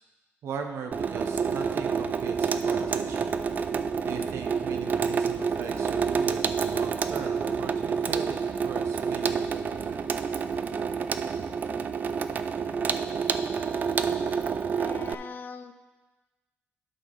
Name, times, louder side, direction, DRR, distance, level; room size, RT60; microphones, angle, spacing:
voice 1, 0.4-3.3 4.0-10.0, right 5 dB, 75° right, 4 dB, 0.8 m, -39 dB
Water tap faucet / Sink (filling or washing), 0.9-15.1, right 6 dB, 40° right, 0.3 m, -28 dB
voice 2, 14.7-15.7, left 5 dB, 45° left, 10 dB, 0.4 m, -41 dB
11.5 x 5.6 x 3.9 m, 1.2 s
cardioid pair, 140°, 5 cm